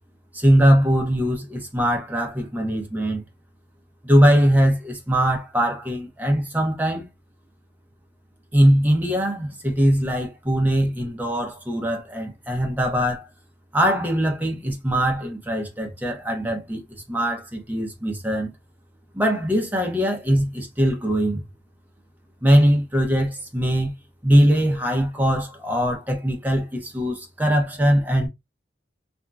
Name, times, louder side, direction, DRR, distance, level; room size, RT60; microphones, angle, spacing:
voice 1, 0.3-3.2 4.0-7.1 8.5-13.3 13.7-18.5 19.1-21.4 22.4-23.9 24.2-28.3, equal, 10° right, 0.7 m, -21 dB
2.8 x 2.5 x 2.3 m
head